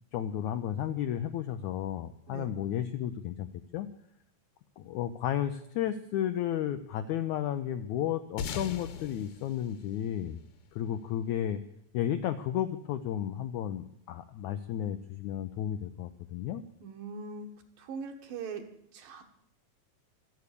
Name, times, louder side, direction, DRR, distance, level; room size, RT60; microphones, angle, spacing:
voice 1, 0.0-3.5 3.7-3.9 4.8-10.4 10.7-11.6 11.9-16.6, left 10 dB, 80° left, 9 dB, 1.7 m, -33 dB
sound 1, 8.4-11.2, left 6 dB, 65° left, 2.5 m, -40 dB
voice 2, 16.8-17.5 17.8-18.6 18.9-19.2, right 5 dB, 70° right, 4 dB, 3.1 m, -40 dB
25.0 x 8.4 x 6.8 m, 0.74 s
omnidirectional pair, 4.2 m